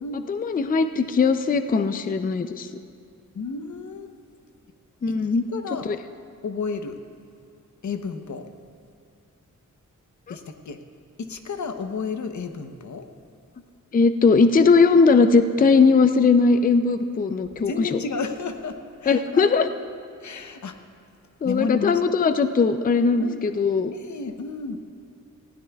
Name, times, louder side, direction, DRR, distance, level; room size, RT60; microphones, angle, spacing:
voice 1, 0.3-2.7 5.0-5.4 5.9-6.0 13.9-18.0 19.1-19.7 21.4-23.9, left 4 dB, 30° left, 9 dB, 0.4 m, -19 dB
voice 2, 3.3-4.1 5.1-5.2 5.5-5.9 6.4-7.0 7.8-8.4 10.3-10.8 11.2-13.1 17.7-19.5 20.2-20.7 21.4-22.0 23.2-23.4 23.9-24.8, left 4 dB, 60° left, 6 dB, 0.8 m, -32 dB
19.5 x 16.0 x 2.3 m, 2.5 s
wide cardioid pair, 165°, 32 cm